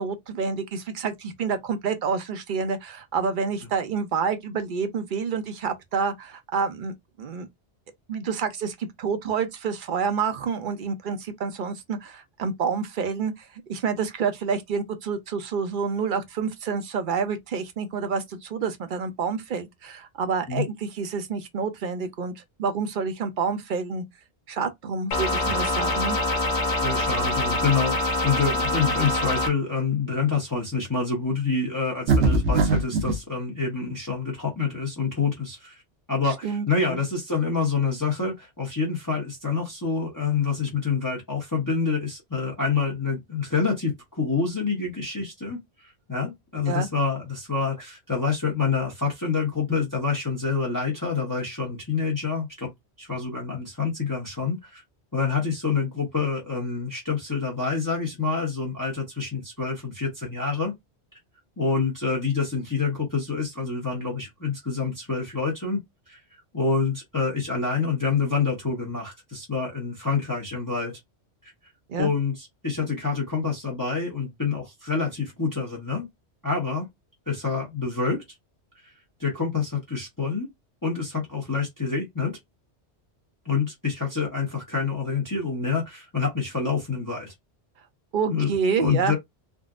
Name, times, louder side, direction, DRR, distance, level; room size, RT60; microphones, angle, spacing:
voice 1, 0.0-7.5 8.1-24.0 24.5-26.2 36.4-37.0 46.7-46.9 71.9-72.1 88.1-89.1, right 5 dB, 55° right, 0.7 m, -28 dB
sound 1, 25.1-29.5, left 1 dB, 70° left, 1.0 m, -25 dB
voice 2, 26.8-35.8 36.1-52.7 53.0-54.8 55.1-60.7 61.6-65.8 66.1-66.2 66.5-71.0 72.0-76.1 76.4-76.9 77.3-78.2 79.2-80.5 80.8-82.4 83.4-87.3 88.3-88.5 88.8-89.2, left 5 dB, 20° left, 0.8 m, -27 dB
sound 2, 32.1-33.2, right 3 dB, 80° right, 1.0 m, -21 dB
3.6 x 2.1 x 2.4 m
omnidirectional pair, 1.2 m